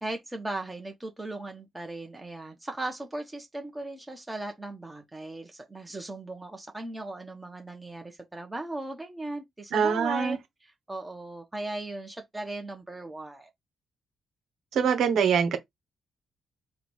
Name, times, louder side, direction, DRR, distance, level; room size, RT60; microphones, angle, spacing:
voice 1, 0.0-10.4 10.9-13.5, right 2 dB, 15° right, 1.3 m, -37 dB
voice 2, 9.7-10.4 14.7-15.6, right 7 dB, 75° right, 1.2 m, -24 dB
3.8 x 2.5 x 4.6 m
cardioid pair, 70°, 0 cm